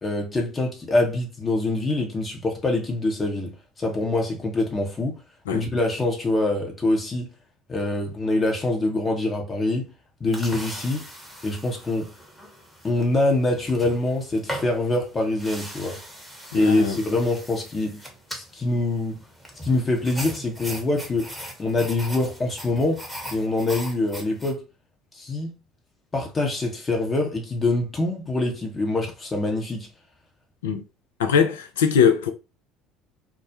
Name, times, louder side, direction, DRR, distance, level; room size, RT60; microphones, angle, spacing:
voice 1, 0.0-3.5 3.8-5.2 5.5-7.3 7.7-9.9 10.2-11.0 11.4-12.1 12.8-16.0 16.5-18.0 18.3-19.2 19.6-21.3 21.6-23.1 23.3-24.6 25.1-25.6 26.1-29.9, left 2 dB, 30° left, 0.7 m, -24 dB
sound 1, 10.3-24.5, equal, ahead, 0.9 m, -40 dB
voice 2, 16.5-17.0 30.6-30.8 31.2-32.3, left 7 dB, 80° left, 0.3 m, -21 dB
2.2 x 2.0 x 2.7 m
hypercardioid pair, 60°, 0 cm